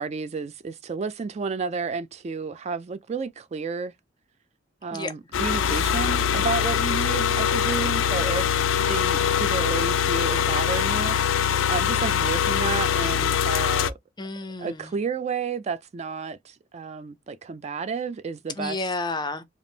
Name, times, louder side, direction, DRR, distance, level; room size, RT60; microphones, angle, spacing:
voice 1, 0.0-3.9 4.8-8.5 8.9-13.9 14.6-18.8, right 5 dB, 35° right, 0.3 m, -31 dB
sound 1, 5.3-13.9, left 8 dB, 85° left, 0.4 m, -23 dB
voice 2, 14.2-14.9 18.6-19.4, left 2 dB, 25° left, 0.5 m, -31 dB
3.5 x 2.4 x 3.9 m
head